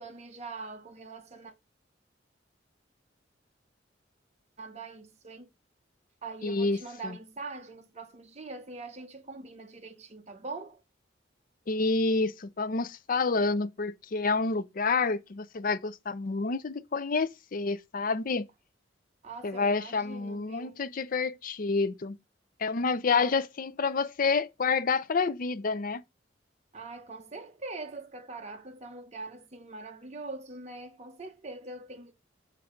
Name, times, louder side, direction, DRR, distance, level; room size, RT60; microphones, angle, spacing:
voice 1, 0.0-1.5 4.6-5.5 6.2-10.8 19.2-20.9 23.1-23.4 26.7-32.1, right 3 dB, 35° right, 0.9 m, -43 dB
voice 2, 6.4-6.8 7.0-7.1 11.7-18.5 19.4-22.2 22.6-26.0, left 4 dB, 50° left, 0.5 m, -28 dB
7.1 x 4.6 x 5.0 m
head